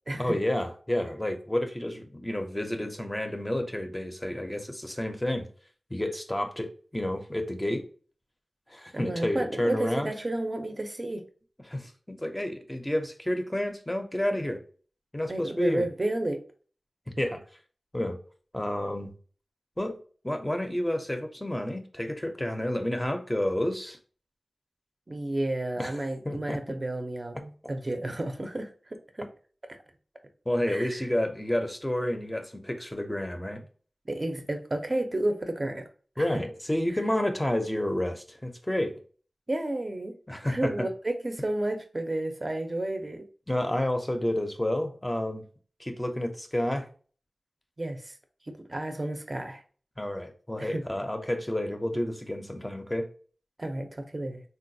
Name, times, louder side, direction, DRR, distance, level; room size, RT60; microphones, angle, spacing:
voice 1, 0.2-5.5 5.9-7.8 8.7-10.1 11.6-14.6 15.1-15.9 17.2-17.4 17.9-18.2 18.5-19.1 19.8-20.0 20.2-24.0 25.8-26.0 26.2-26.6 30.5-33.7 36.2-39.0 40.3-40.9 43.5-45.4 45.8-46.9 50.0-53.1, left 1 dB, 15° left, 5 dB, 0.5 m, -30 dB
voice 2, 8.9-11.2 15.3-16.4 25.1-28.7 29.1-29.3 29.7-29.8 30.7-31.0 34.1-35.8 36.2-36.4 39.5-40.1 40.4-43.3 47.8-48.1 48.5-49.6 50.6-50.8 53.6-54.4, right 1 dB, 35° right, 6 dB, 0.5 m, -31 dB
3.9 x 2.2 x 2.6 m, 0.41 s
wide cardioid pair, 85°, 0 cm